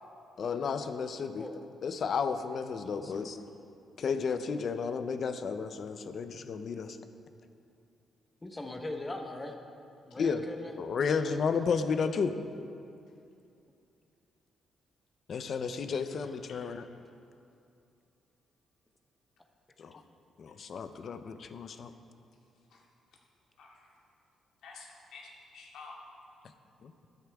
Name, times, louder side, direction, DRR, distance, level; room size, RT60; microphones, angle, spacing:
voice 1, 0.4-1.5 1.8-3.4 4.0-7.0 10.2-10.4 10.8-12.3 15.3-16.9 19.8-20.0 20.4-21.9 26.8-26.9, left 5 dB, 45° left, 10 dB, 0.6 m, -32 dB
voice 2, 2.8-3.3 8.4-9.6 10.1-10.8, left 2 dB, 15° left, 4 dB, 1.0 m, -40 dB
voice 3, 23.6-23.9 24.6-26.0, left 4 dB, 75° left, -2 dB, 2.3 m, -50 dB
13.0 x 13.0 x 3.5 m, 2.6 s
cardioid pair, 150°, 0 cm